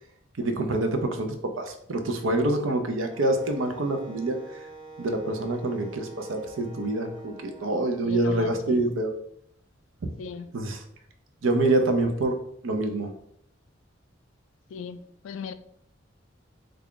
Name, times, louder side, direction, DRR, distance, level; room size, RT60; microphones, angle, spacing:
voice 1, 0.4-4.4 5.0-9.1 10.5-10.8 11.4-12.4 12.6-13.1, right 2 dB, 75° right, 0.6 m, -26 dB
Wind instrument woodwind instrument, 3.1-7.7, right 3 dB, 25° right, 0.7 m, -45 dB
voice 2, 8.0-8.8 10.2-10.5 14.7-15.5, left 6 dB, 75° left, 0.3 m, -37 dB
3.4 x 2.3 x 3.7 m
head